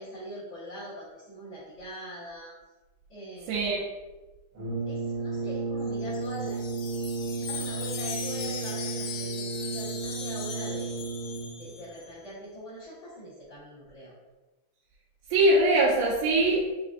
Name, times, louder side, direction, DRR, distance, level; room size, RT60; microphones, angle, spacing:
voice 1, 0.0-2.5 3.1-3.7 4.9-6.7 7.4-11.0 11.5-14.1, equal, 65° left, -10 dB, 1.2 m, -43 dB
voice 2, 3.5-3.9 15.3-16.7, right 1 dB, 85° right, -6 dB, 2.1 m, -22 dB
Brass instrument, 4.5-11.7, right 3 dB, 60° right, 1.3 m, -33 dB
Wind chime, 5.9-12.1, left 6 dB, 85° left, 2.1 m, -39 dB
5.1 x 3.4 x 2.4 m, 1.1 s
omnidirectional pair, 3.6 m